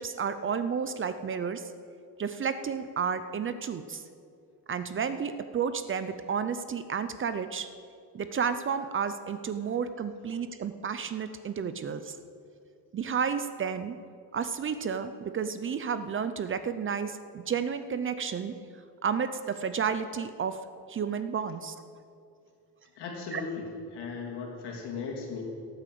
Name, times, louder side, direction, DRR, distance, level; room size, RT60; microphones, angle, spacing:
voice 1, 0.0-1.7 2.2-4.0 4.7-7.7 8.1-12.2 12.9-14.0 14.3-18.6 19.0-20.6 20.9-21.7 23.3-23.4, right 6 dB, 30° right, 11 dB, 0.5 m, -31 dB
voice 2, 23.0-25.4, left 4 dB, 80° left, -1 dB, 3.0 m, -37 dB
17.5 x 9.0 x 7.6 m, 2.4 s
cardioid pair, 165°, 40 cm